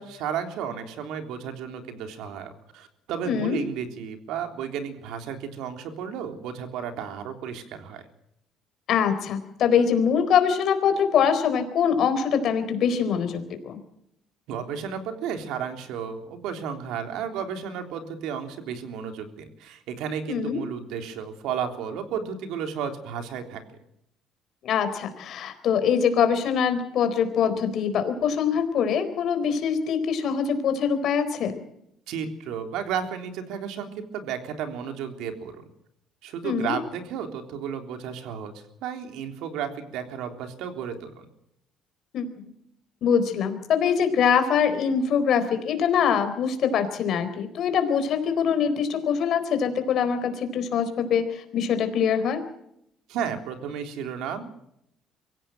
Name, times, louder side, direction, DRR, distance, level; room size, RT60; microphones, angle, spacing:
voice 1, 0.0-8.0 14.5-23.6 32.1-35.6 36.2-41.3 53.1-54.5, right 7 dB, 75° right, 6 dB, 3.5 m, -33 dB
voice 2, 3.2-3.6 8.9-13.8 20.3-20.6 24.6-31.6 36.4-36.8 42.1-42.4 43.0-52.4, left 7 dB, 55° left, 9 dB, 4.1 m, -23 dB
24.5 x 16.5 x 7.8 m, 0.76 s
cardioid pair, 145°, 0 cm